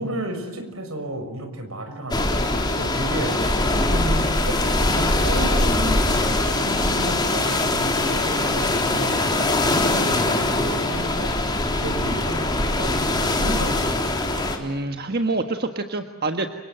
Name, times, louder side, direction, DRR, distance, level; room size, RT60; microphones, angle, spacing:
voice 1, 0.0-11.3 11.7-14.1, right 1 dB, 80° right, 7 dB, 6.2 m, -32 dB
sound 1, 2.1-14.6, left 2 dB, 20° left, 3.5 m, -22 dB
voice 2, 14.6-16.5, right 2 dB, 50° right, 5 dB, 1.5 m, -26 dB
30.0 x 25.5 x 7.8 m, 1.2 s
head